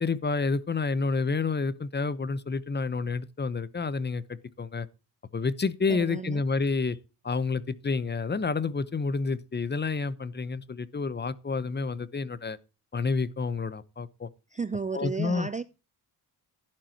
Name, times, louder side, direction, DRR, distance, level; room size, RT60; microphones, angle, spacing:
voice 1, 0.0-4.9 5.3-7.0 7.2-12.6 12.9-14.3 14.9-15.5, left 4 dB, 25° left, 0.8 m, -29 dB
voice 2, 5.9-6.4 14.5-15.6, right 5 dB, 20° right, 0.5 m, -33 dB
11.5 x 11.0 x 2.9 m
cardioid pair, 105°, 41 cm